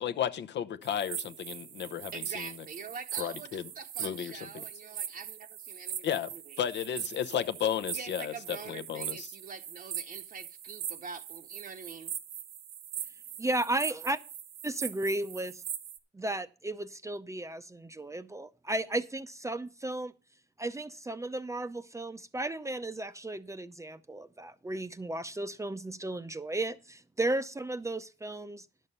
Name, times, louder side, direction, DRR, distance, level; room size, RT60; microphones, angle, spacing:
voice 1, 0.0-2.5 3.2-3.6 4.0-4.6 6.0-6.3 6.6-9.3, left 9 dB, 60° left, 0.8 m, -33 dB
sound 1, 0.8-16.0, right 9 dB, 80° right, 1.1 m, -41 dB
voice 2, 2.1-6.2 6.5-6.6 7.9-12.1, right 5 dB, 45° right, 0.8 m, -45 dB
voice 3, 13.4-14.2 14.6-15.5 16.1-20.1 20.6-28.7, right 2 dB, 15° right, 0.6 m, -34 dB
11.0 x 6.5 x 5.5 m
cardioid pair, 90°, 20 cm